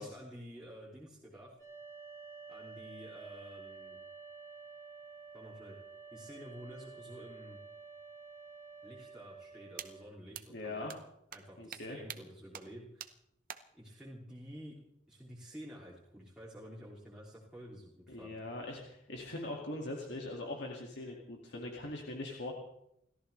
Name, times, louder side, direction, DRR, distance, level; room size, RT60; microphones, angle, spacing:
voice 1, 0.0-1.5 2.5-4.0 5.3-5.8 6.1-7.6 8.8-10.9 11.3-13.1 13.7-14.8 15.1-18.4, equal, 5° right, -7 dB, 2.9 m, -50 dB
sound 1, 1.6-10.0, right 5 dB, 20° left, 2.7 m, -51 dB
sound 2, 9.8-9.9 10.3-10.4 10.9-11.0 11.3-11.4 11.7-11.8 12.1-12.2 12.5-12.6 13.0-13.1 13.5-13.6, right 9 dB, 45° right, 0.9 m, -43 dB
voice 2, 10.5-10.9 11.6-12.0 18.1-22.5, left 2 dB, 60° left, 0 dB, 2.3 m, -41 dB
29.5 x 14.0 x 3.3 m, 0.78 s
head